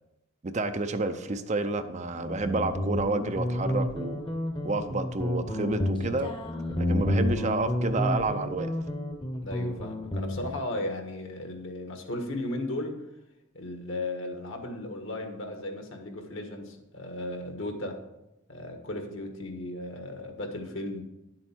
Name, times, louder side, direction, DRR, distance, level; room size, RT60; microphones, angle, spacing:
voice 1, 0.4-4.2 4.6-6.3 6.8-8.7, right 3 dB, 30° right, 9 dB, 0.5 m, -29 dB
Guitar, 2.1-10.6, left 1 dB, 20° left, 0.9 m, -30 dB
voice 2, 9.4-13.0 13.5-18.0 18.5-21.0, left 1 dB, 60° left, 4 dB, 1.5 m, -35 dB
10.5 x 7.6 x 4.5 m, 0.92 s
head